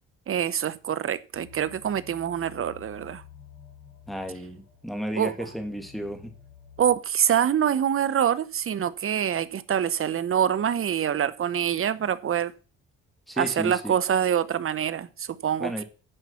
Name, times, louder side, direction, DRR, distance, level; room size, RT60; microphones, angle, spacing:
voice 1, 0.3-3.2 5.2-5.3 6.8-12.5 13.4-15.8, right 9 dB, 45° right, 0.9 m, -25 dB
sound 1, 1.3-6.9, left 9 dB, 85° left, 4.2 m, -51 dB
voice 2, 4.1-6.3 13.3-13.9 15.6-15.8, equal, ahead, 2.6 m, -33 dB
10.0 x 5.6 x 5.7 m
cardioid pair, 90°, 30 cm